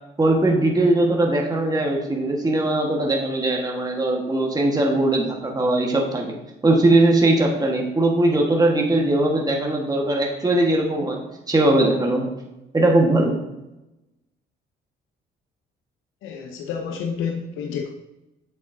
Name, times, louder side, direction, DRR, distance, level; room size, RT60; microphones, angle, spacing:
voice 1, 0.2-6.3 6.6-12.3 12.7-13.4, right 2 dB, 20° right, 0 dB, 1.4 m, -20 dB
voice 2, 16.2-17.9, left 6 dB, 90° left, 2 dB, 0.7 m, -29 dB
7.3 x 7.2 x 2.7 m, 0.96 s
cardioid pair, 90°, 20 cm